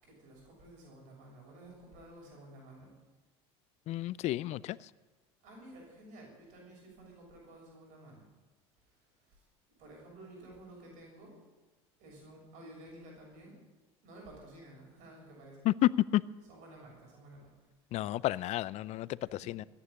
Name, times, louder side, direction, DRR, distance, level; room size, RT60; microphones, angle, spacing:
voice 1, 0.0-2.9 5.4-8.3 8.9-9.5 9.8-11.3 12.0-13.6 14.0-15.6 16.5-17.5 19.2-19.5, right 1 dB, 65° right, -1 dB, 6.8 m, -53 dB
voice 2, 3.9-4.9 15.6-16.2 17.9-19.2 19.5-19.6, left 15 dB, 50° left, 21 dB, 0.5 m, -30 dB
14.5 x 9.9 x 9.7 m, 1.2 s
supercardioid pair, 90°, 14 cm